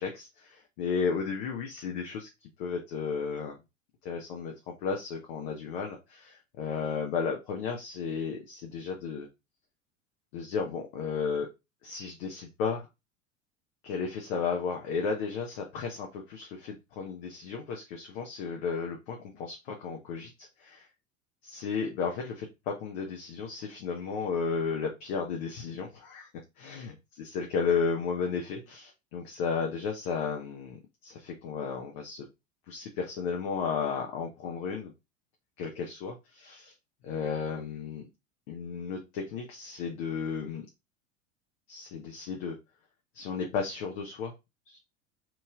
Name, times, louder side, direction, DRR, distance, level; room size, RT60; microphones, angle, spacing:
voice 1, 0.0-2.3 2.6-3.5 4.0-4.5 4.8-9.3 10.3-11.5 11.8-12.9 13.8-20.9 21.4-26.3 26.6-30.8 31.0-32.2 32.7-34.9 35.6-36.7 37.0-38.1 38.5-40.7 41.7-42.6 43.1-44.3 44.7-44.8, left 5 dB, 45° left, 1 dB, 0.8 m, -33 dB
3.0 x 2.8 x 3.5 m, 0.25 s
figure-of-eight pair, 80°, 40 cm